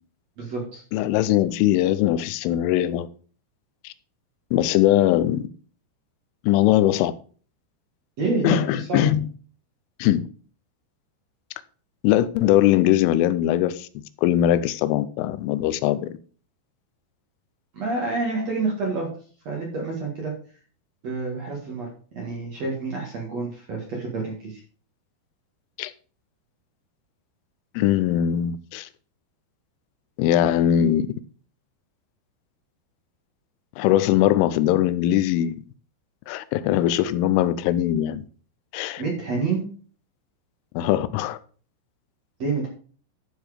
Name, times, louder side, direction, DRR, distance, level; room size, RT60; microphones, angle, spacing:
voice 1, 0.4-0.8 8.2-9.0 17.7-19.1 19.5-20.3 21.0-21.9 22.2-24.6 39.0-39.6 42.4-42.7, right 3 dB, 55° right, 1.9 m, -28 dB
voice 2, 0.9-3.1 3.8-3.9 4.5-5.4 6.4-7.1 8.4-9.3 10.0-10.3 12.0-16.0 25.8-25.9 27.8-28.9 30.2-31.1 33.8-35.5 36.3-38.3 38.7-39.0 40.7-41.4, left 12 dB, 85° left, 3.1 m, -21 dB
12.0 x 4.7 x 4.9 m
omnidirectional pair, 5.8 m